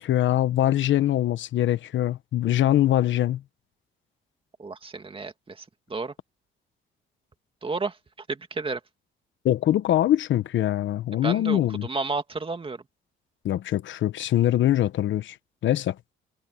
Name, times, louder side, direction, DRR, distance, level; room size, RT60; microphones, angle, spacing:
voice 1, 0.0-3.4 9.4-11.9 13.4-15.4 15.6-16.0, left 12 dB, 70° left, 1.0 m, -23 dB
voice 2, 4.6-5.6 5.9-6.1 7.6-7.9 8.3-8.8 11.2-12.8, right 4 dB, 25° right, 2.4 m, -31 dB
cardioid pair, 90°, 20 cm